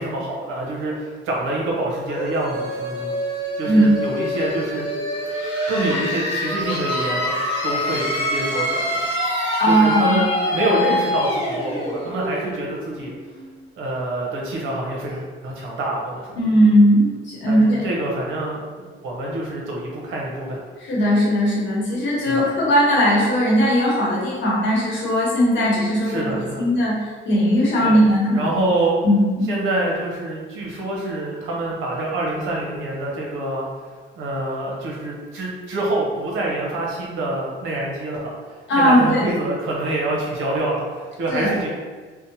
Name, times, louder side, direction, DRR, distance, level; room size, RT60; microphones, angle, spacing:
voice 1, 0.0-4.9 5.7-7.3 7.6-9.0 9.6-13.1 13.8-16.5 17.5-20.6 22.3-22.5 26.0-26.6 27.8-28.0 28.3-29.0 29.5-33.7 34.2-41.7, right 2 dB, 90° right, -3 dB, 0.7 m, -26 dB
sound 1, 2.1-13.6, left 1 dB, 25° left, 0.9 m, -25 dB
voice 2, 9.6-10.2 16.4-17.9 20.8-26.3 26.6-26.9 27.2-28.5 29.0-29.5 38.7-39.3 41.3-41.5, equal, 70° left, -5 dB, 1.0 m, -18 dB
2.7 x 2.0 x 2.7 m, 1.4 s
cardioid pair, 90°, 20 cm